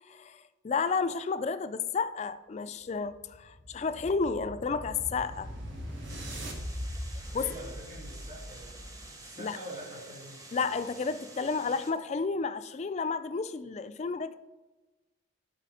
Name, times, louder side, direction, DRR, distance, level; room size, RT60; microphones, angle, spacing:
voice 1, 0.1-5.5 7.3-7.5 9.4-9.6 10.5-14.3, left 4 dB, 35° left, 0.3 m, -31 dB
sound 1, 3.0-9.2, equal, 75° right, 1.2 m, -41 dB
sound 2, 6.1-11.9, right 2 dB, 20° right, 0.8 m, -49 dB
voice 2, 7.3-8.8 9.2-10.4, right 1 dB, 35° right, 1.9 m, -45 dB
7.6 x 4.1 x 4.9 m
head